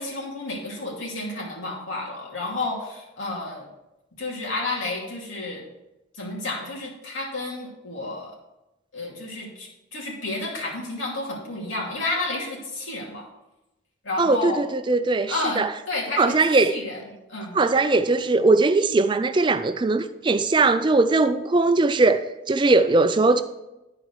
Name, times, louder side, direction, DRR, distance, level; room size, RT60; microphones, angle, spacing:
voice 1, 0.0-3.7 4.2-5.6 6.1-8.3 8.9-13.3 14.0-14.6 15.3-17.0 17.3-17.6, left 2 dB, 90° left, 2.6 m, -31 dB
voice 2, 14.2-15.7 16.2-16.8 17.5-23.4, right 3 dB, 25° right, 0.4 m, -20 dB
11.5 x 4.8 x 4.8 m
head